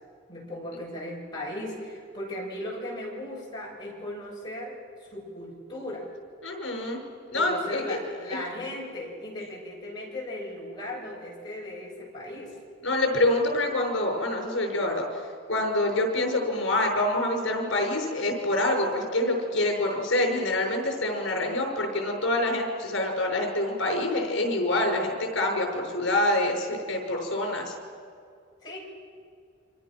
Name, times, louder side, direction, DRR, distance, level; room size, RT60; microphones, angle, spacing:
voice 1, 0.3-4.7 5.0-6.0 7.3-12.5 28.6-28.8, left 1 dB, 20° left, -4 dB, 7.4 m, -37 dB
voice 2, 6.4-7.0 7.3-8.0 12.8-15.2 15.5-27.7, left 1 dB, 65° left, 2 dB, 6.1 m, -26 dB
29.5 x 26.0 x 6.2 m, 2.2 s
head